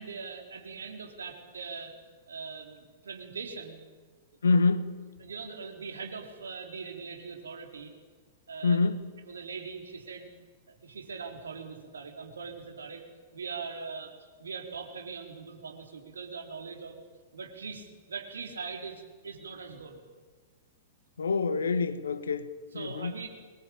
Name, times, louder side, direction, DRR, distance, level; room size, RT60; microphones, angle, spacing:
voice 1, 0.0-1.9 2.3-3.8 5.2-7.9 8.5-8.9 9.3-10.3 10.7-13.0 13.3-16.9 17.3-20.0 22.7-23.3, right 5 dB, 70° right, 4.3 m, -41 dB
voice 2, 4.4-4.9 8.6-9.0 21.2-23.1, left 4 dB, 70° left, 1.5 m, -26 dB
24.0 x 20.5 x 9.0 m
figure-of-eight pair, 100°, 0 cm